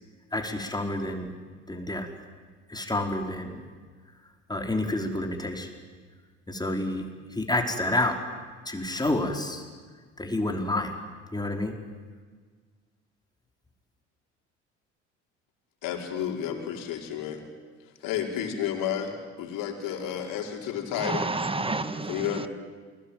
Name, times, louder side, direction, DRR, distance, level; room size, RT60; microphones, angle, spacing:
voice 1, 0.3-1.3 1.7-2.1 2.7-3.6 4.5-5.7 6.5-8.2 8.6-9.6 10.2-11.0 11.3-11.7, left 1 dB, 10° left, 3 dB, 5.1 m, -29 dB
voice 2, 15.8-17.4 18.0-21.3 22.1-22.5, left 9 dB, 65° left, 2 dB, 5.0 m, -31 dB
voice 3, 21.0-22.5, right 3 dB, 15° right, 12 dB, 2.0 m, -30 dB
28.5 x 22.0 x 9.3 m, 1.5 s
hypercardioid pair, 65°, 35 cm